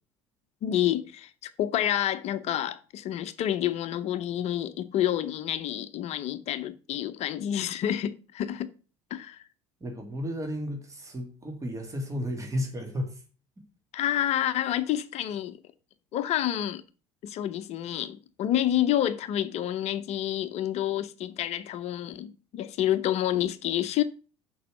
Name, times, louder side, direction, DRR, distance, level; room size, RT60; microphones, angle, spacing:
voice 1, 0.6-8.7 9.1-9.4 13.9-15.6 16.1-16.8 17.2-24.0, left 12 dB, 45° left, 0.7 m, -28 dB
voice 2, 9.8-13.2, equal, 20° right, 2.3 m, -33 dB
6.8 x 5.5 x 6.3 m
figure-of-eight pair, 60°, 15 cm